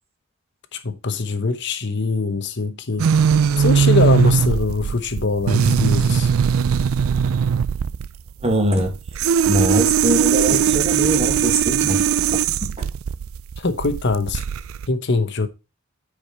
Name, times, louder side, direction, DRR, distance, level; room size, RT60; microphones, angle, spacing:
voice 1, 0.7-3.1 3.6-6.3 13.6-14.4 14.9-15.5, left 3 dB, 55° left, 1.0 m, -22 dB
sound 1, 3.0-14.9, right 7 dB, 85° right, 0.4 m, -19 dB
voice 2, 8.4-8.9 9.5-12.7, right 1 dB, 30° right, 1.7 m, -22 dB
9.7 x 5.1 x 4.4 m
head